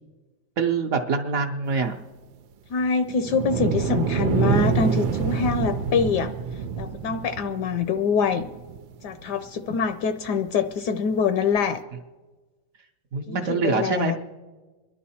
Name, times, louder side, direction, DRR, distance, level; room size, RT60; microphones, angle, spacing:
voice 1, 0.6-2.0 13.1-14.2, right 5 dB, 60° right, 3 dB, 0.9 m, -25 dB
voice 2, 2.7-6.3 6.8-8.4 9.0-11.8 13.3-14.2, left 6 dB, 70° left, 10 dB, 1.1 m, -25 dB
sound 1, 3.0-9.4 10.0-10.1 11.6-11.7, right 6 dB, 90° right, 1.4 m, -26 dB
27.0 x 11.5 x 4.2 m, 1.3 s
omnidirectional pair, 2.0 m